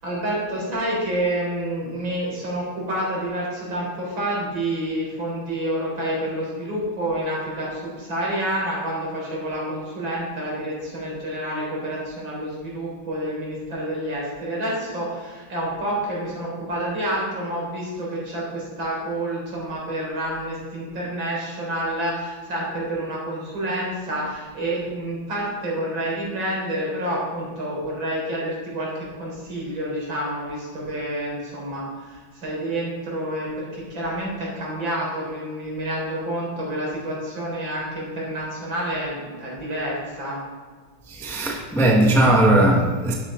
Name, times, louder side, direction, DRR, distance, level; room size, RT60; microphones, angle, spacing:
voice 1, 0.0-40.4, right 1 dB, 65° right, -4 dB, 4.8 m, -28 dB
voice 2, 41.1-43.1, right 1 dB, ahead, -1 dB, 1.0 m, -18 dB
12.0 x 10.0 x 3.8 m, 1.5 s
omnidirectional pair, 2.3 m